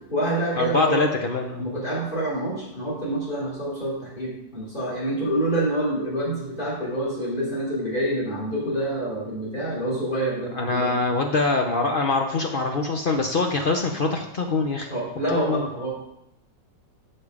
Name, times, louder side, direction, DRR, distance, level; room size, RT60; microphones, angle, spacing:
voice 1, 0.0-1.1 1.6-10.9 14.9-15.9, right 1 dB, 25° left, -6 dB, 3.8 m, -27 dB
voice 2, 0.6-1.6 10.5-14.9 15.3-15.7, left 3 dB, 70° left, 3 dB, 0.5 m, -24 dB
7.9 x 6.6 x 4.9 m, 0.83 s
omnidirectional pair, 1.9 m